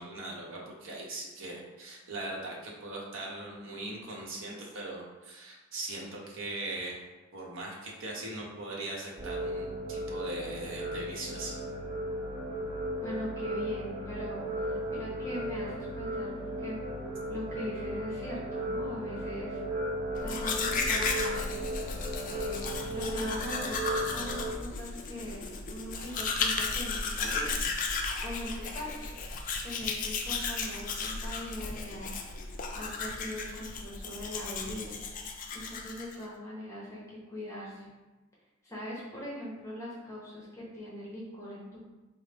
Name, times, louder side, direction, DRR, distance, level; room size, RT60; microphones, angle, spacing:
voice 1, 0.0-7.0 7.3-11.6, right 2 dB, 65° right, -3 dB, 0.8 m, -40 dB
sound 1, 9.2-24.5, equal, 20° right, 0.5 m, -36 dB
voice 2, 13.0-16.8 17.3-19.6 20.2-21.6 22.3-27.6 28.2-29.0 29.6-32.1 32.7-35.0 35.5-37.9 38.6-41.8, equal, 15° left, -6 dB, 0.8 m, -41 dB
Domestic sounds home sounds, 20.2-36.2, left 4 dB, 40° left, 0.3 m, -34 dB
3.9 x 2.0 x 3.3 m, 1.1 s
head